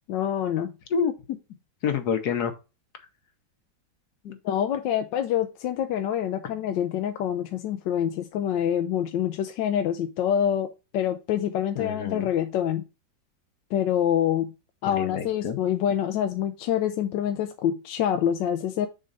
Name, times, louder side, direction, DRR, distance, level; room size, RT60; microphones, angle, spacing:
voice 1, 0.1-0.7 4.4-12.8 13.7-14.5 14.8-18.9, left 10 dB, 80° left, 1.3 m, -26 dB
voice 2, 0.9-1.4 1.8-2.5 4.2-4.4 11.8-12.3 14.8-15.6, left 6 dB, 65° left, 1.4 m, -28 dB
6.5 x 3.7 x 5.1 m
omnidirectional pair, 2.0 m